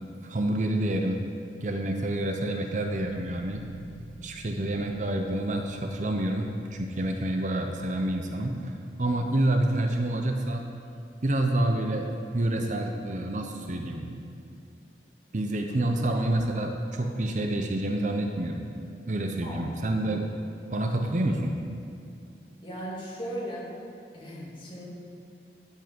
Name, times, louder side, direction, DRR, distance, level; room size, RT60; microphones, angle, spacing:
voice 1, 0.2-1.2 1.6-3.6 4.2-8.7 9.0-10.7 11.2-12.1 12.3-14.2 15.3-18.7 19.1-20.4 20.7-21.6, right 1 dB, 45° right, 4 dB, 0.7 m, -28 dB
sound 1, 3.0-13.5, right 1 dB, 85° left, 1.1 m, -52 dB
voice 2, 19.4-19.7 22.6-23.7 24.1-24.8, equal, 30° left, -6 dB, 2.4 m, -37 dB
10.5 x 8.4 x 5.2 m, 2.4 s
head